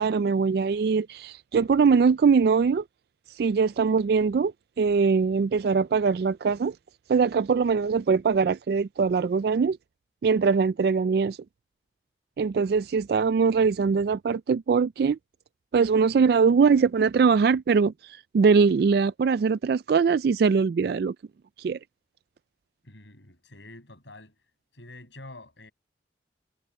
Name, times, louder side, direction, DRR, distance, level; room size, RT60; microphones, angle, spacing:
voice 1, 0.0-2.8 3.3-6.8 7.1-9.8 10.2-11.4 12.4-15.2 15.7-21.1 21.6-21.8, right 5 dB, 60° right, 0.3 m, -22 dB
voice 2, 22.8-24.4 24.7-25.7, left 2 dB, 80° left, 7.8 m, -47 dB
head